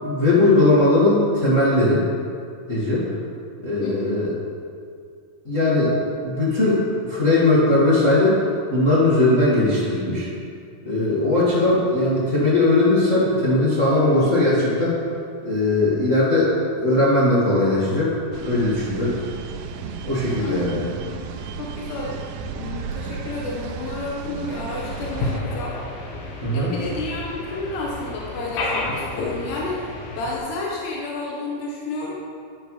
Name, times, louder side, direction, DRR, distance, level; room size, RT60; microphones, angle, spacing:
voice 1, 0.0-2.0 2.7-3.0 3.6-4.3 5.4-5.9 6.2-8.4 8.7-10.3 10.8-15.0 15.4-16.5 16.8-18.2 18.4-19.2 20.0-20.9 26.4-26.8, left 2 dB, 45° left, -9 dB, 1.0 m, -19 dB
voice 2, 3.8-4.1 20.3-20.6 21.1-21.3 21.6-22.2 22.5-25.8 26.5-29.9 30.2-32.1, left 2 dB, 90° left, -3 dB, 3.2 m, -31 dB
sound 1, 18.3-25.4, right 6 dB, 80° right, 2.0 m, -34 dB
sound 2, 24.7-30.4, left 2 dB, 70° left, 3.0 m, -31 dB
11.5 x 10.5 x 3.2 m, 2.3 s
omnidirectional pair, 4.6 m